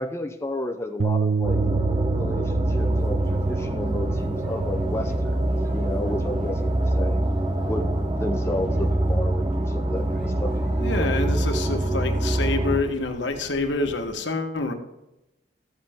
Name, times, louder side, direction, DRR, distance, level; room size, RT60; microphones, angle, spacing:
voice 1, 0.0-1.6 2.1-5.4 5.7-7.3 7.6-11.1 11.4-11.5, left 1 dB, 15° left, 4 dB, 0.6 m, -32 dB
Bass guitar, 1.0-7.2, right 5 dB, 85° right, 0.5 m, -30 dB
sound 1, 1.4-12.8, right 1 dB, 25° right, 0.8 m, -24 dB
sound 2, 2.6-14.1, equal, 5° right, 2.4 m, -46 dB
voice 2, 10.8-14.7, left 3 dB, 70° left, 5 dB, 1.2 m, -27 dB
14.0 x 7.8 x 3.6 m, 0.91 s
head